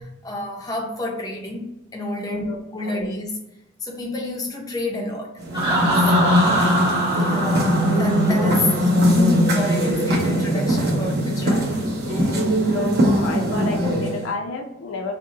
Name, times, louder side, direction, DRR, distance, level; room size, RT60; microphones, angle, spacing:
voice 1, 0.0-3.4 3.8-5.4 6.1-6.7 7.1-7.6 8.0-11.8, left 1 dB, 20° left, -1 dB, 0.5 m, -29 dB
voice 2, 2.3-3.1 6.0-6.4 9.9-10.0 12.2-12.3 12.7-15.1, left 3 dB, 75° left, 1 dB, 0.5 m, -31 dB
sound 1, 5.4-14.3, equal, 50° right, 0.9 m, -20 dB
Laughter, 5.5-9.2, right 1 dB, 25° right, 0.7 m, -24 dB
2.7 x 2.1 x 3.8 m, 0.89 s
head